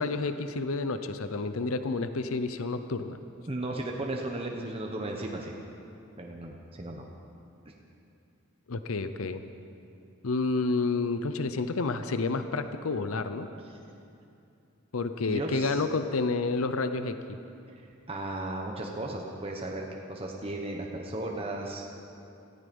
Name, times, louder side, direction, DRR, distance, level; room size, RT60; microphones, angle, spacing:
voice 1, 0.0-3.2 8.7-9.4 10.2-13.5 14.9-17.4, left 3 dB, 80° left, 10 dB, 0.7 m, -30 dB
voice 2, 3.5-5.6 6.2-7.0 7.6-7.7 15.2-15.8 18.1-21.8, right 1 dB, 25° right, 0 dB, 1.2 m, -35 dB
18.0 x 15.0 x 5.4 m, 2.6 s
head